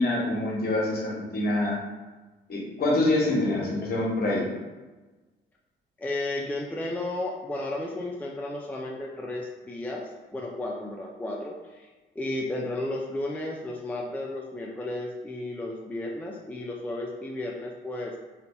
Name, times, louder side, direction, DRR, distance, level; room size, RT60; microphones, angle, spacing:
voice 1, 0.0-1.8 2.5-4.4, left 2 dB, 50° left, -3 dB, 1.1 m, -25 dB
voice 2, 6.0-11.9 12.2-18.2, left 2 dB, 10° left, -1 dB, 0.3 m, -33 dB
2.7 x 2.2 x 4.1 m, 1.2 s
cardioid pair, 90°, 20 cm